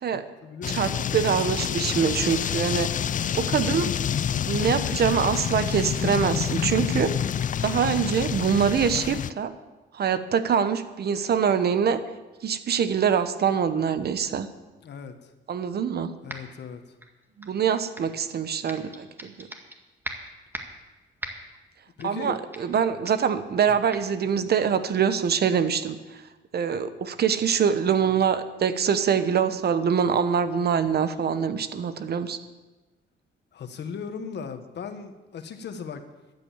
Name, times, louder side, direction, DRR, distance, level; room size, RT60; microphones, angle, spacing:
voice 1, 0.1-0.9 14.8-15.3 16.2-16.8 22.0-22.4 23.7-23.8 33.5-36.0, left 6 dB, 60° left, 8 dB, 1.4 m, -37 dB
sound 1, 0.6-9.3, left 9 dB, 40° left, 0.4 m, -27 dB
voice 2, 0.7-2.9 3.3-3.9 4.5-7.1 7.6-9.5 9.9-12.0 12.4-14.5 15.5-16.1 17.4-19.5 22.0-26.2 26.5-32.4, right 7 dB, 55° right, 12 dB, 1.0 m, -24 dB
sound 2, 16.3-16.6 17.0-18.2 18.7-19.8 20.0-20.8 21.2-21.6 22.0-22.3 22.5-22.8 23.1-23.3 23.9-24.0, right 1 dB, 10° right, 1.9 m, -39 dB
13.5 x 9.7 x 7.2 m, 1.2 s
cardioid pair, 90°, 20 cm